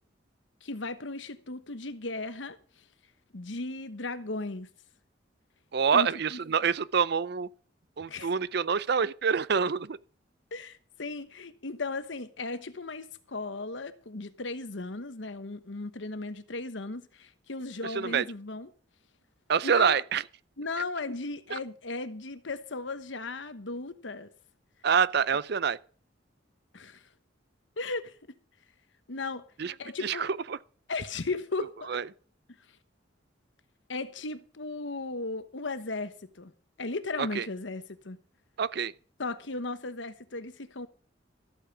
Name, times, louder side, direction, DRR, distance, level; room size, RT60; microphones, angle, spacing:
voice 1, 0.6-2.8 3.3-4.7 5.9-6.4 8.1-8.3 10.5-18.7 19.6-20.0 20.6-24.3 26.7-27.0 27.8-28.2 29.1-29.5 29.8-30.3 30.9-32.0 33.9-36.5 36.8-38.2 39.2-40.9, left 3 dB, 80° left, 1.1 m, -36 dB
voice 2, 5.7-7.5 8.0-10.0 17.8-18.2 19.5-20.2 21.5-21.6 24.8-25.8 29.6-29.7 30.0-30.6 31.9-32.1 37.2-37.5 38.6-38.9, right 6 dB, 60° right, 0.5 m, -26 dB
14.0 x 8.7 x 5.9 m
head